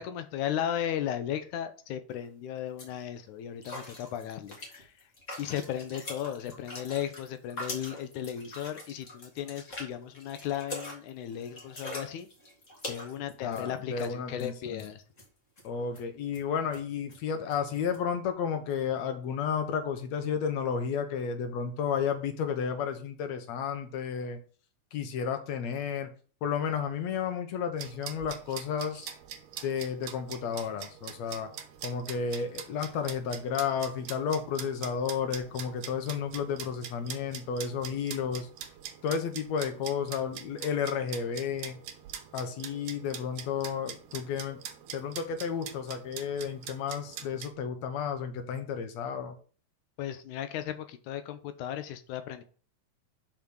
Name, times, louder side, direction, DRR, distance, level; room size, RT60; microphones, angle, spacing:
voice 1, 0.0-4.9 5.4-12.3 12.9-15.0 50.0-52.4, left 10 dB, 90° left, 10 dB, 2.2 m, -35 dB
sound 1, 2.1-2.3 2.6-3.0 3.6-14.1 14.4-14.5 14.8-15.2 15.6-15.7 15.9-16.0 16.3-16.4 16.7-16.8 17.1-17.2 17.5-17.6 17.9-18.0, left 1 dB, 30° left, 2.0 m, -43 dB
voice 2, 13.4-14.9 15.6-24.4 24.9-26.1 26.4-29.1 29.6-31.5 31.8-38.5 39.0-41.8 42.3-44.6 44.9-49.4, left 7 dB, 70° left, 8 dB, 2.1 m, -32 dB
sound 2, 27.8-47.5, right 9 dB, 75° right, 2.2 m, -44 dB
5.9 x 5.1 x 6.2 m, 0.40 s
omnidirectional pair, 3.4 m